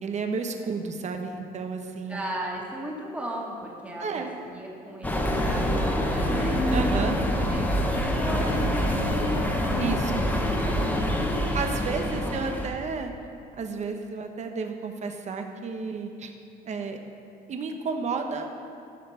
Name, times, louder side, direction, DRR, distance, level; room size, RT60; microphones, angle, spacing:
voice 1, 0.0-2.2 4.0-4.3 6.7-7.2 9.8-10.2 11.5-13.1 13.6-16.3 16.6-17.0 17.5-18.5, right 4 dB, 45° right, 5 dB, 1.1 m, -32 dB
voice 2, 2.1-6.6 7.5-9.3 11.4-12.5, right 1 dB, 10° right, -3 dB, 2.0 m, -37 dB
sound 1, 5.0-12.7, equal, 10° left, 1.2 m, -25 dB
14.0 x 5.9 x 5.7 m, 2.5 s
cardioid pair, 110°, 17 cm